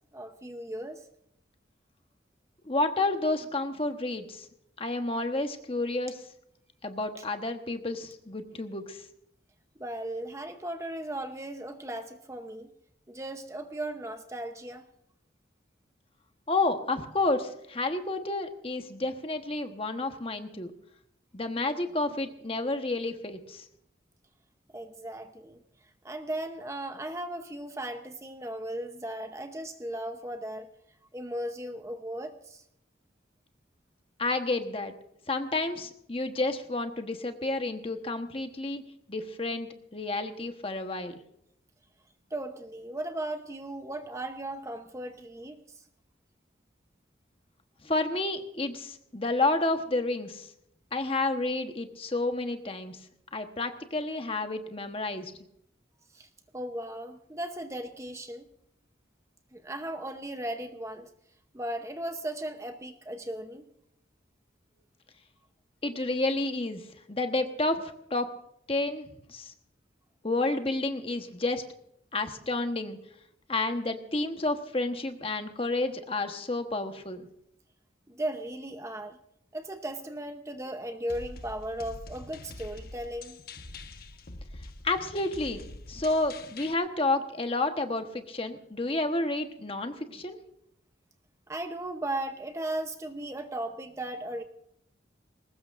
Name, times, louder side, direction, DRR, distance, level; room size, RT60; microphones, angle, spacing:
voice 1, 0.1-1.0 7.2-7.3 9.8-12.7 13.1-14.8 24.7-25.6 26.0-30.7 31.1-32.6 42.3-45.8 56.1-56.3 56.5-58.5 59.5-61.1 61.5-63.6 78.1-79.2 79.5-83.4 91.5-94.4, right 1 dB, 15° right, 7 dB, 0.8 m, -36 dB
voice 2, 2.6-4.5 4.8-6.2 6.8-9.0 16.5-20.7 21.3-23.6 34.2-34.9 35.3-38.8 39.1-41.2 47.8-50.5 50.9-53.0 53.3-55.3 65.8-66.8 67.1-68.3 68.7-69.5 70.2-71.6 72.1-73.0 73.5-77.2 84.8-85.6 85.9-90.4, left 2 dB, 30° left, 6 dB, 1.2 m, -30 dB
sound 1, 81.1-86.7, left 2 dB, 50° left, 1.2 m, -45 dB
21.0 x 19.0 x 2.6 m, 0.75 s
head